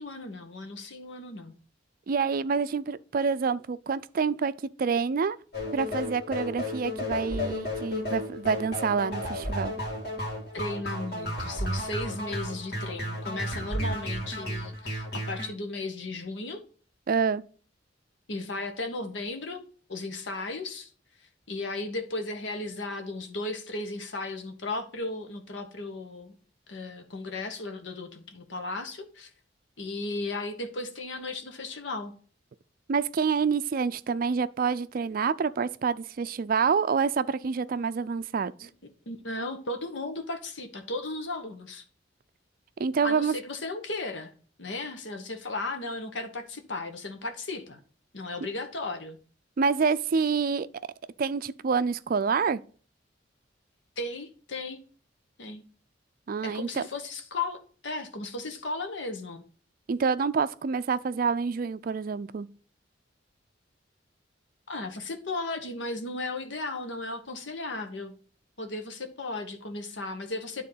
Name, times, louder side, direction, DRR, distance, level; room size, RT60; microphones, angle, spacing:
voice 1, 0.0-1.5 10.5-16.6 18.3-19.6 19.9-20.9 21.5-26.3 26.7-29.3 29.8-32.1 38.6-38.7 39.1-41.8 43.0-44.3 44.6-47.8 48.1-49.2 54.0-54.8 55.4-55.6 56.4-59.4 64.7-68.1 68.6-70.6, left 2 dB, 80° left, 1.2 m, -35 dB
voice 2, 2.1-4.5 4.8-5.4 5.7-9.7 17.1-17.4 32.9-38.7 42.8-43.3 49.6-50.7 51.2-52.6 56.3-56.8 59.9-62.5, right 5 dB, 50° right, 0.4 m, -27 dB
sound 1, 5.5-15.5, left 1 dB, 60° left, 2.5 m, -33 dB
9.9 x 3.7 x 5.5 m
head